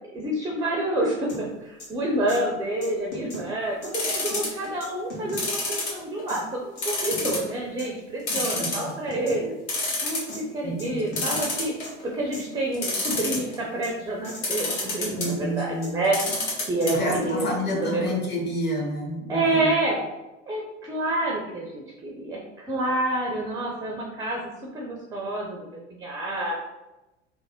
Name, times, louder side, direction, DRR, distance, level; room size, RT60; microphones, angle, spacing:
voice 1, 0.1-9.6 10.0-10.2 10.5-11.7 12.0-16.2 16.7-18.2 19.3-20.0 20.5-24.4 24.7-26.5, right 1 dB, 10° right, -1 dB, 0.5 m, -28 dB
sound 1, 1.3-1.4 1.8-1.9 2.3-2.4 2.8-3.5 3.8-3.9 4.3-4.4 4.8-5.4 5.8-5.9 6.3-6.4 6.8-7.4 7.8-7.9 8.3-8.4 8.8-9.4 9.8-9.9 10.3-10.4 10.8-10.9 11.1-11.4 11.8-11.9 12.3-12.4 12.8-13.4 13.8-13.9 14.2-14.4 14.8-15.4 15.8-15.9 16.3-16.4 16.8-17.3, left 2 dB, 80° left, 1.3 m, -38 dB
sound 2, 3.9-4.7 5.4-6.3 6.8-7.5 7.8-7.9 8.3-9.1 9.4-9.5 9.7-10.3 11.2-12.0 12.7-13.6 14.4-15.3 16.0-16.9 17.2-17.3 17.6-17.7, left 2 dB, 60° left, 1.4 m, -28 dB
voice 2, 8.5-8.9 10.6-11.2 15.2-16.0 16.9-19.7, equal, 30° left, 0 dB, 0.9 m, -29 dB
3.3 x 2.1 x 3.5 m, 1.0 s
hypercardioid pair, 85°, 36 cm